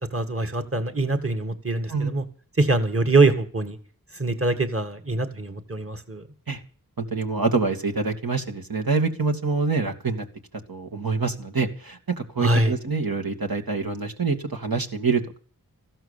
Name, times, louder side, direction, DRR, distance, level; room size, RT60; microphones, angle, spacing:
voice 1, 0.1-2.2 2.6-3.8 4.1-6.3 12.4-12.7, right 2 dB, 40° right, 6 dB, 2.1 m, -23 dB
voice 2, 7.0-10.2 10.7-15.2, right 4 dB, 75° right, 3 dB, 2.4 m, -26 dB
15.0 x 12.5 x 7.3 m, 0.42 s
wide cardioid pair, 45°, 36 cm